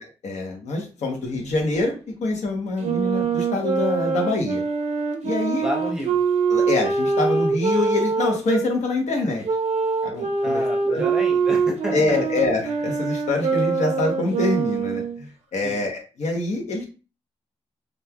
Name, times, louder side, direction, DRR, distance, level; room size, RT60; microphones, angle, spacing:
voice 1, 0.0-1.9 2.2-4.6 5.2-5.7 6.5-9.4 10.0-11.0 11.9-16.8, left 3 dB, 80° left, 1 dB, 0.9 m, -25 dB
Wind instrument woodwind instrument, 2.8-8.7 9.4-15.2, right 5 dB, 75° right, 0.5 m, -24 dB
voice 2, 5.6-6.2 10.4-12.4 15.6-15.8, equal, 5° right, 0 dB, 0.6 m, -30 dB
3.1 x 2.3 x 2.2 m, 0.33 s
wide cardioid pair, 165°, 12 cm